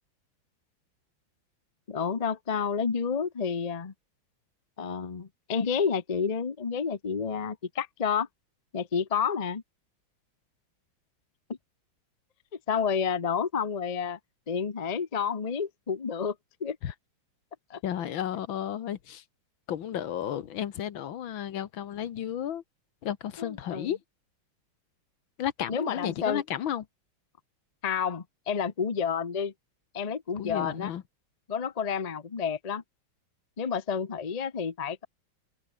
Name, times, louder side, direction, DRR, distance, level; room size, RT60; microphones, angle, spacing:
voice 1, 1.9-3.9 4.8-8.3 8.7-9.6 12.7-14.2 14.5-16.3 16.6-16.8 17.7-17.8 23.4-23.9 25.7-26.4 27.8-29.5 29.9-30.9 31.5-32.8 33.6-35.1, left 6 dB, 30° left, 0.7 m, -30 dB
voice 2, 17.8-19.2 19.7-22.6 23.0-24.0 25.4-26.9 30.4-31.0, left 10 dB, 75° left, 2.0 m, -33 dB
omnidirectional pair, 2.2 m